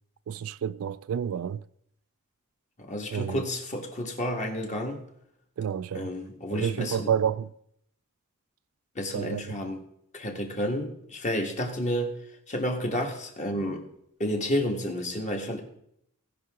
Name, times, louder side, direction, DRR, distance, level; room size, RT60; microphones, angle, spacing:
voice 1, 0.3-1.6 3.1-3.4 5.6-6.1 6.5-7.5 9.1-9.4, right 8 dB, 65° right, 0.3 m, -29 dB
voice 2, 2.8-5.0 5.9-7.1 8.9-9.8 10.1-12.2 12.5-13.9 14.2-15.6, equal, 35° left, 1.6 m, -30 dB
17.5 x 5.9 x 3.6 m
head